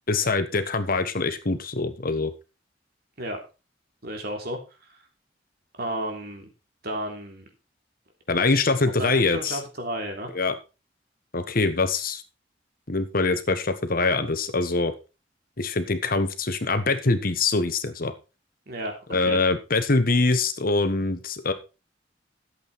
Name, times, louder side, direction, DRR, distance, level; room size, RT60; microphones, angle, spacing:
voice 1, 0.1-2.3 8.3-9.6 10.3-10.5 11.3-12.2 12.9-14.9 15.6-18.1 19.1-21.5, left 3 dB, 55° left, 9 dB, 1.4 m, -24 dB
voice 2, 4.0-4.6 5.8-6.5 6.8-7.5 8.5-8.6 9.0-10.3 18.7-19.4, right 1 dB, 60° right, 3 dB, 3.3 m, -33 dB
12.5 x 8.0 x 4.3 m, 0.30 s
head